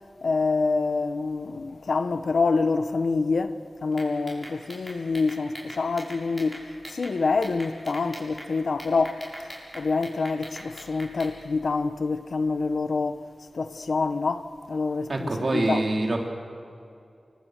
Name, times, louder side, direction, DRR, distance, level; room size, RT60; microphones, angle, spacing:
voice 1, 0.2-6.6 6.9-9.2 9.7-13.2 13.5-15.8, left 4 dB, 85° left, 1.2 m, -26 dB
sound 1, 3.9-7.1 7.4-8.5 8.8-11.3, equal, 10° right, 7.6 m, -41 dB
voice 2, 15.1-16.3, right 2 dB, 55° right, 3.9 m, -25 dB
29.0 x 26.0 x 6.7 m
wide cardioid pair, 85°, 0 cm